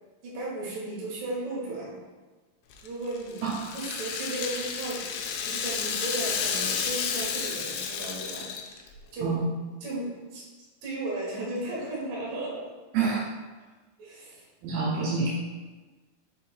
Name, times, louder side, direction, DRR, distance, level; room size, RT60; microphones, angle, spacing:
voice 1, 0.2-2.0 2.8-3.4 3.7-5.0 5.4-8.5 9.1-9.4 9.8-10.4 10.8-12.7 14.0-14.5, right 2 dB, 60° right, -5 dB, 3.0 m, -35 dB
Rattle (instrument), 2.7-8.9, left 6 dB, 80° left, 2.4 m, -31 dB
voice 2, 3.4-3.8 9.2-9.5 12.9-13.2 14.6-15.3, right 5 dB, 75° right, -5 dB, 2.8 m, -27 dB
6.4 x 3.6 x 4.5 m, 1.3 s
omnidirectional pair, 4.6 m